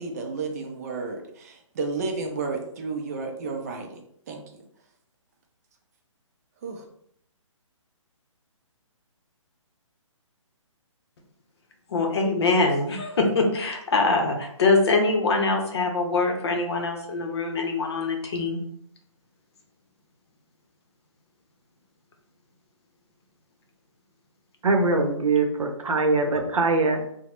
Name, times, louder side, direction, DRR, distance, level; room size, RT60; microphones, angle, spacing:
voice 1, 0.0-4.4 6.6-6.8, right 4 dB, 30° right, 3 dB, 0.5 m, -32 dB
voice 2, 11.9-18.6, left 3 dB, 50° left, 3 dB, 0.7 m, -23 dB
voice 3, 24.6-27.1, right 3 dB, 85° right, 4 dB, 0.7 m, -22 dB
2.9 x 2.1 x 3.0 m, 0.69 s
hypercardioid pair, 155°, 17 cm